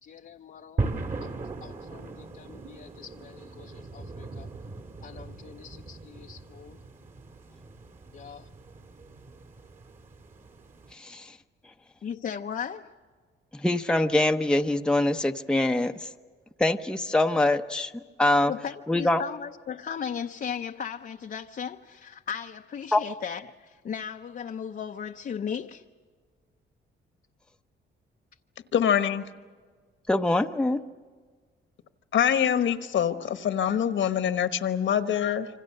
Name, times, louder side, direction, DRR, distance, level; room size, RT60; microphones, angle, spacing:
voice 1, 0.0-0.8 1.2-4.5 5.0-6.8 8.1-8.5 12.0-12.9 18.4-25.8, left 7 dB, 45° left, 0.7 m, -37 dB
sound 1, 0.8-10.9, right 3 dB, 40° right, 2.1 m, -38 dB
voice 2, 10.9-11.4 13.5-16.1 16.6-17.9 18.2-18.5 18.9-19.2 22.9-23.0 30.1-30.8, left 2 dB, 5° left, 0.7 m, -24 dB
voice 3, 28.7-29.2 32.1-35.5, left 9 dB, 65° left, 1.3 m, -24 dB
26.5 x 25.5 x 6.6 m
cardioid pair, 100°, 21 cm